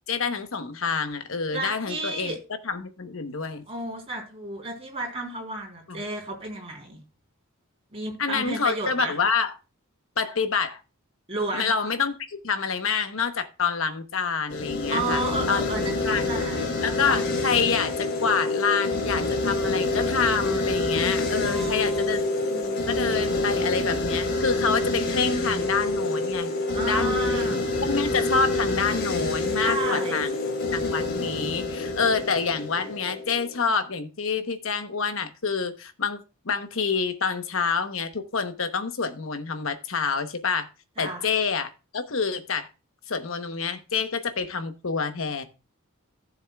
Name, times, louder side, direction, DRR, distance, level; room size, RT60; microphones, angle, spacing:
voice 1, 0.1-2.3 2.6-3.6 5.9-6.0 8.2-9.5 10.2-10.8 11.5-15.7 16.1-16.3 16.8-22.2 22.9-26.5 26.8-27.2 27.9-30.3 30.7-40.7 41.0-42.7 43.1-45.4, left 5 dB, 70° left, 1.0 m, -27 dB
voice 2, 1.4-2.4 3.7-7.0 7.9-9.1 11.3-11.7 14.9-16.8 21.4-22.7 26.7-27.6 29.6-30.2 41.0-41.3, right 2 dB, 30° right, 3.7 m, -32 dB
sound 1, 14.5-33.6, left 2 dB, 50° left, 2.6 m, -27 dB
15.5 x 7.1 x 2.3 m
head